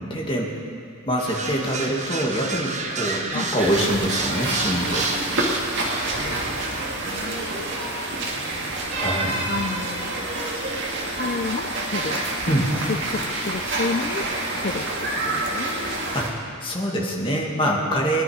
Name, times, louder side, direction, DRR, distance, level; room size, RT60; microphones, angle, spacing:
voice 1, 0.1-0.5 1.1-5.1 8.9-9.5 12.5-12.7 16.1-16.3 16.6-18.2, equal, 25° left, -2 dB, 2.0 m, -24 dB
sound 1, 1.2-13.9, right 3 dB, 35° right, 1.1 m, -34 dB
sound 2, 3.6-16.3, right 2 dB, 60° right, 1.9 m, -28 dB
voice 2, 6.2-7.5 8.3-8.8 9.5-10.2 11.1-12.2 12.8-14.3 14.6-15.8, left 3 dB, 45° left, 6 dB, 0.5 m, -31 dB
20.0 x 10.5 x 5.1 m, 2.4 s
head